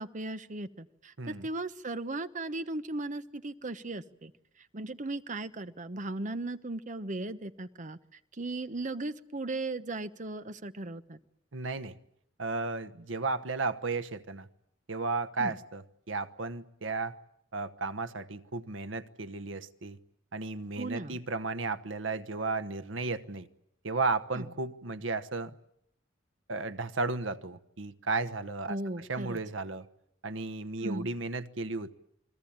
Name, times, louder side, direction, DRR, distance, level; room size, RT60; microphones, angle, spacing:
voice 1, 0.0-4.3 4.7-8.0 8.4-11.2 15.4-15.5 20.8-21.2 24.4-24.5 28.7-29.4 30.8-31.1, right 2 dB, 40° right, 12 dB, 1.0 m, -37 dB
voice 2, 1.2-1.5 11.5-12.0 12.4-14.5 14.9-17.1 17.5-20.0 20.3-23.5 23.8-25.6 26.5-29.9 30.2-31.9, right 3 dB, 90° right, 13 dB, 1.1 m, -34 dB
29.5 x 21.0 x 8.8 m, 0.73 s
head